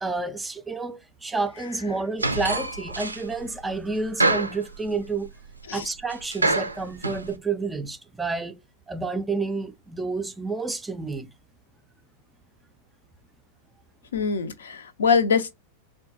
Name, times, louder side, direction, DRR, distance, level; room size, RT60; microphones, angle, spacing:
voice 1, 0.0-5.3 5.7-8.6 8.9-11.3, right 3 dB, 10° right, 0.4 m, -30 dB
sound 1, 2.2-3.4 3.7-5.3 5.6-5.7 6.1-7.3, right 2 dB, 85° right, 0.4 m, -26 dB
voice 2, 14.1-15.5, left 5 dB, 65° left, 0.4 m, -23 dB
3.6 x 2.2 x 2.6 m
figure-of-eight pair, 90°, 0 cm